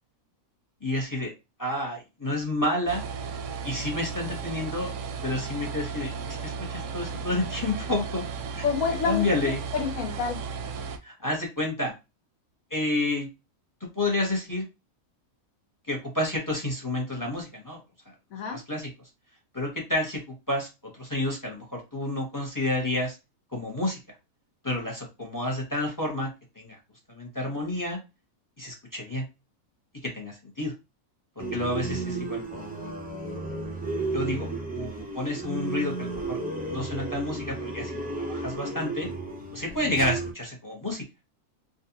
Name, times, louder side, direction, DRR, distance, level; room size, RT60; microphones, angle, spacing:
voice 1, 0.8-1.3 1.6-3.0 3.6-4.9 5.2-8.2 8.5-8.6 9.0-9.6 11.0-11.9 12.7-13.3 13.8-14.7 15.9-17.8 18.5-18.9 19.5-20.7 21.0-23.2 23.5-24.0 24.6-26.3 26.6-26.8 27.1-28.0 28.6-29.2 30.0-30.7 31.5-32.7 34.1-36.4 36.7-39.1 39.5-41.0, left 1 dB, 15° left, 0.8 m, -30 dB
sound 1, 2.9-11.0, right 5 dB, 70° right, 0.8 m, -35 dB
voice 2, 8.6-10.4 18.3-18.6, left 6 dB, 70° left, 1.2 m, -28 dB
sound 2, 31.4-40.3, right 2 dB, 15° right, 0.3 m, -33 dB
3.7 x 2.4 x 2.8 m
omnidirectional pair, 1.5 m